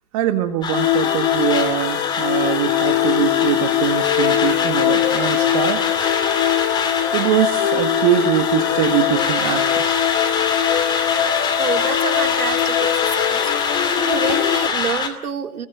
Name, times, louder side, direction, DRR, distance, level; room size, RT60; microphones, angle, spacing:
voice 1, 0.1-5.8 7.1-10.0, right 11 dB, 20° right, 9 dB, 1.3 m, -22 dB
sound 1, 0.6-15.1, left 5 dB, 10° left, 2.5 m, -24 dB
sound 2, 0.7-14.7, left 12 dB, 35° left, 2.1 m, -22 dB
voice 2, 11.6-13.5 14.0-15.7, right 7 dB, 75° right, 6 dB, 3.8 m, -27 dB
29.5 x 21.5 x 7.9 m, 0.69 s
hypercardioid pair, 165°, 45 cm